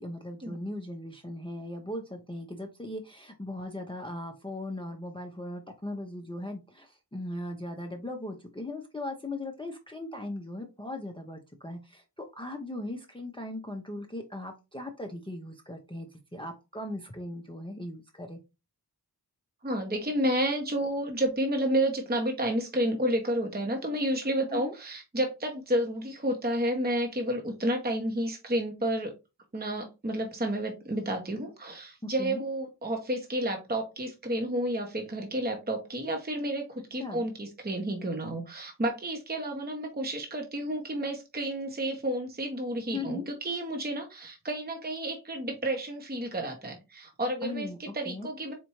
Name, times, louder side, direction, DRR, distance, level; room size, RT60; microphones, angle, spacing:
voice 1, 0.0-18.4 24.5-24.7 32.0-32.4 37.0-37.3 42.9-43.2 47.4-48.3, left 1 dB, 10° left, 3 dB, 0.6 m, -38 dB
voice 2, 19.6-29.1 29.5-48.5, right 1 dB, 20° right, 3 dB, 0.8 m, -31 dB
4.3 x 2.5 x 3.0 m, 0.26 s
wide cardioid pair, 50°, 42 cm